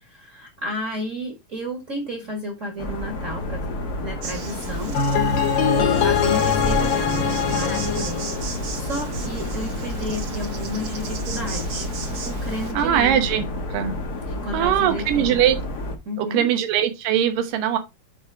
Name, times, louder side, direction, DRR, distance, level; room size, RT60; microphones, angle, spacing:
voice 1, 0.0-5.0 5.4-11.9 12.2-13.4 14.3-15.3 16.0-16.5, equal, 35° right, 1.4 m, -32 dB
sound 1, 2.8-16.0, left 1 dB, 60° left, 1.0 m, -30 dB
Insect, 4.2-12.7, right 4 dB, 60° right, 1.2 m, -35 dB
sound 2, 4.9-9.0, left 6 dB, 80° left, 3.2 m, -22 dB
voice 2, 12.7-13.4 13.7-13.9 14.5-15.6 16.2-17.8, right 10 dB, 85° right, 2.8 m, -21 dB
9.2 x 4.5 x 3.5 m
omnidirectional pair, 3.8 m